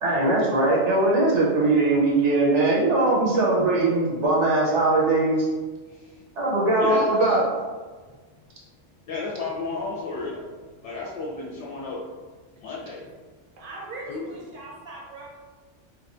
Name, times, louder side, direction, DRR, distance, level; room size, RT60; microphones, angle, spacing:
voice 1, 0.0-5.5 6.4-7.4, right 2 dB, 80° right, -5 dB, 1.0 m, -20 dB
voice 2, 6.8-7.1 9.1-10.4 10.8-12.0 12.6-13.0 14.1-14.3, left 3 dB, 75° left, -5 dB, 0.9 m, -32 dB
voice 3, 13.6-15.4, right 2 dB, 55° right, -3 dB, 0.7 m, -39 dB
3.0 x 2.3 x 2.5 m, 1.4 s
omnidirectional pair, 1.2 m